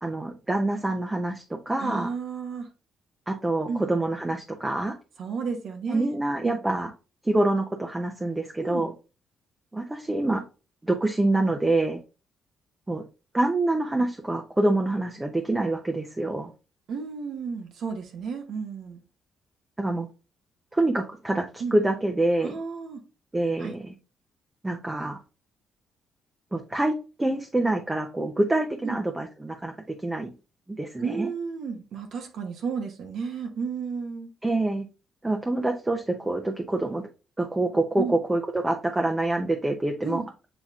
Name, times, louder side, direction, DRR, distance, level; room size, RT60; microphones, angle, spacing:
voice 1, 0.0-2.1 3.3-5.0 5.9-6.9 7.2-8.9 9.7-10.4 10.8-12.0 12.9-13.0 13.3-16.5 19.8-20.1 20.7-22.6 23.3-23.9 24.6-25.2 26.5-29.7 30.0-30.3 30.8-31.3 34.4-34.9 35.2-37.0 37.4-40.2, right 2 dB, 15° right, 0.7 m, -26 dB
voice 2, 1.8-2.7 3.7-3.8 5.2-6.6 8.6-8.9 16.9-19.0 21.6-21.7 22.4-23.0 23.6-23.8 28.8-29.0 31.0-34.3 38.0-38.2 40.0-40.3, right 5 dB, 70° right, 0.9 m, -33 dB
7.1 x 3.0 x 2.4 m
cardioid pair, 90°, 0 cm